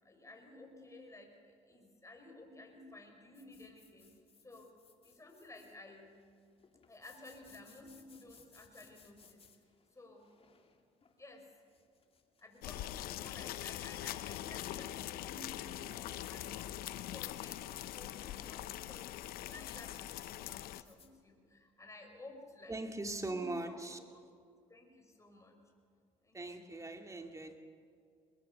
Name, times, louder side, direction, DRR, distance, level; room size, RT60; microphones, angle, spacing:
voice 1, 0.0-4.2 4.4-4.7 5.0-6.1 6.9-9.4 9.9-10.3 11.2-11.4 12.4-16.8 17.1-22.8 23.1-23.8 24.7-25.6 26.2-26.8, left 2 dB, 20° left, 3 dB, 5.7 m, -54 dB
sound 1, 3.3-21.1, left 5 dB, 40° left, 2.5 m, -65 dB
sound 2, 12.6-20.8, left 14 dB, 75° left, 0.7 m, -43 dB
voice 2, 22.7-24.0 26.3-27.6, right 2 dB, 20° right, 5 dB, 2.5 m, -40 dB
22.5 x 21.0 x 6.8 m, 2.3 s
supercardioid pair, 70°, 16 cm